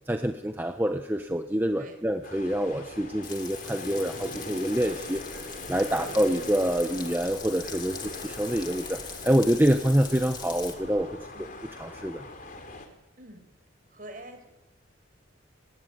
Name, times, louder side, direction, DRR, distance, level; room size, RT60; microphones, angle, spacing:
voice 1, 0.0-11.2 11.8-12.2, equal, 10° right, 5 dB, 1.0 m, -26 dB
sound 1, 2.2-12.9, left 2 dB, 45° left, 4.0 m, -42 dB
Frying (food), 3.2-10.7, left 6 dB, 20° left, 2.6 m, -42 dB
sound 2, 4.7-11.1, equal, 75° right, 7.7 m, -51 dB
voice 2, 13.2-13.5 13.9-14.5, right 1 dB, 45° right, 6 dB, 5.8 m, -45 dB
24.5 x 19.5 x 9.5 m, 0.97 s
head